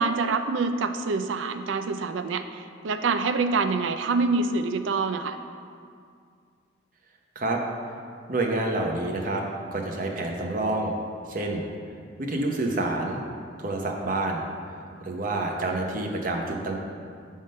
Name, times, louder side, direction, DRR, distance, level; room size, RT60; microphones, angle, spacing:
voice 1, 0.0-2.4 2.8-5.4, right 4 dB, 90° right, 9 dB, 0.4 m, -26 dB
voice 2, 8.3-9.4 9.7-10.9 11.3-11.7 12.2-13.2 13.6-14.4 15.0-16.7, right 2 dB, 45° right, 1 dB, 0.8 m, -28 dB
7.6 x 3.7 x 5.3 m, 2.2 s
head